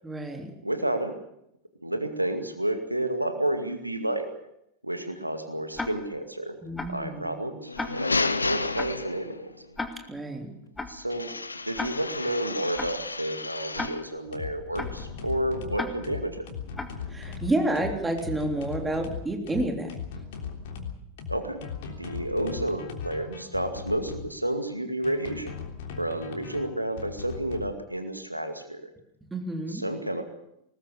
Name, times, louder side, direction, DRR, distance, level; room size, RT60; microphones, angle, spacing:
voice 1, 0.0-0.5 6.6-7.4 10.1-10.5 17.1-19.9 29.3-29.8, right 2 dB, 10° right, 3 dB, 3.4 m, -29 dB
voice 2, 0.6-1.1 1.8-4.3 4.8-6.5 6.9-9.5 10.9-11.4 11.6-16.4 21.3-21.6 22.0-25.6 26.0-28.9 29.7-30.3, right 1 dB, 85° right, 6 dB, 2.2 m, -30 dB
Tick-tock, 5.7-6.2 6.8-7.1 7.8-8.2 8.8-9.1 9.8-10.2 10.8-11.1 11.8-12.2 12.8-13.1 13.8-14.2 14.8-15.1 15.7-16.2 16.7-17.1, left 3 dB, 10° left, 2.0 m, -36 dB
sound 1, 7.6-9.5 11.1-14.1, left 3 dB, 80° left, 0.9 m, -31 dB
sound 2, 14.2-24.3 25.0-27.7, left 6 dB, 55° left, 3.4 m, -38 dB
20.5 x 19.5 x 7.0 m, 0.81 s
figure-of-eight pair, 90°, 0 cm